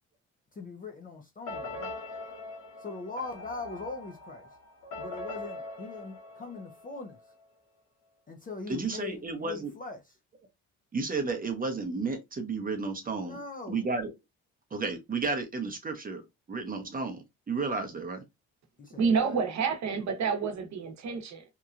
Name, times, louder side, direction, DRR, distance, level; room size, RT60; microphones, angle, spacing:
voice 1, 0.6-1.9 2.8-4.4 5.0-7.2 8.3-10.1 13.2-13.8 18.8-19.3, left 3 dB, 30° left, 0.5 m, -41 dB
sound 1, 1.5-7.2, left 2 dB, 85° left, 1.0 m, -42 dB
voice 2, 8.7-9.7 10.9-13.4 13.7-14.1 14.7-16.2 16.5-18.2, right 4 dB, 30° right, 0.7 m, -32 dB
voice 3, 19.0-21.4, right 5 dB, 65° right, 0.9 m, -28 dB
2.9 x 2.2 x 2.4 m
cardioid pair, 90°, 30 cm